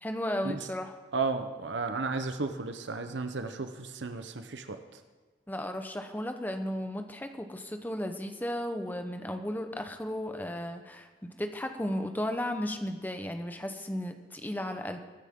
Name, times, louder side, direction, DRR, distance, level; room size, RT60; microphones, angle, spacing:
voice 1, 0.0-0.9 5.5-15.0, left 1 dB, 10° left, 6 dB, 0.9 m, -34 dB
voice 2, 1.1-4.8, right 4 dB, 80° right, 7 dB, 0.9 m, -33 dB
23.0 x 9.9 x 3.7 m, 1.4 s
head